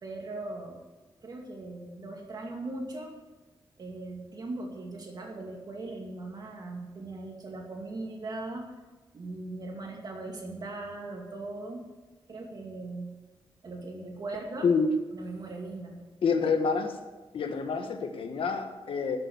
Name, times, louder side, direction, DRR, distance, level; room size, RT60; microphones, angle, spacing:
voice 1, 0.0-0.8 1.2-3.1 3.8-8.7 9.1-11.9 12.3-13.1 13.6-14.7 15.1-16.0, right 2 dB, 45° right, 1 dB, 2.3 m, -39 dB
voice 2, 16.2-17.0 17.3-19.2, left 5 dB, 75° left, 6 dB, 1.5 m, -27 dB
13.0 x 7.7 x 8.0 m, 1.2 s
wide cardioid pair, 175°, 9 cm